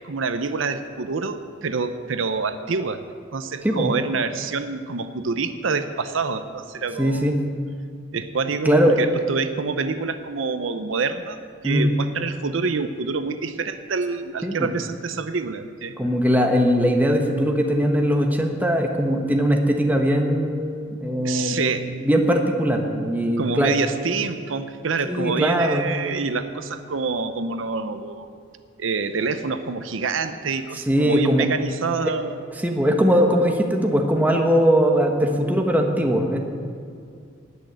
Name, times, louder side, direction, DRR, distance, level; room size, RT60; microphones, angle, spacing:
voice 1, 0.0-3.0 3.3-7.3 8.1-11.4 11.6-16.0 21.2-21.8 23.4-28.3 28.8-32.4, right 4 dB, 80° right, 10 dB, 0.7 m, -27 dB
voice 2, 7.0-7.4 8.6-9.0 11.6-11.9 14.4-14.7 16.0-21.6 22.0-23.8 25.1-25.9 30.9-31.5 32.6-36.4, equal, 10° right, 2 dB, 1.3 m, -20 dB
19.0 x 6.4 x 7.9 m, 2.3 s
head